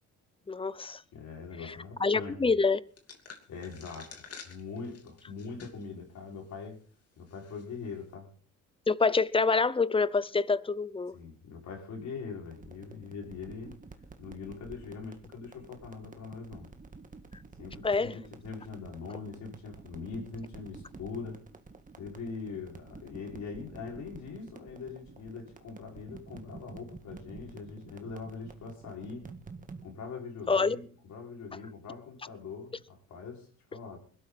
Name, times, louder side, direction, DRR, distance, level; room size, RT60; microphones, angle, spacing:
voice 1, 0.5-1.0 1.6-1.7 2.0-2.8 8.9-11.1 17.8-18.1 30.5-30.8, left 4 dB, 20° left, 0.7 m, -26 dB
voice 2, 1.1-2.5 3.5-6.8 7.2-8.3 11.1-13.7 14.2-16.7 17.6-21.4 22.0-29.3 29.8-34.0, left 4 dB, 70° left, 5.8 m, -42 dB
sound 1, 3.0-5.9 6.4-6.5 7.3-7.6, left 5 dB, 55° left, 3.0 m, -49 dB
sound 2, 12.4-29.9, right 4 dB, 25° right, 1.8 m, -50 dB
21.0 x 13.0 x 4.2 m
cardioid pair, 90°, 30 cm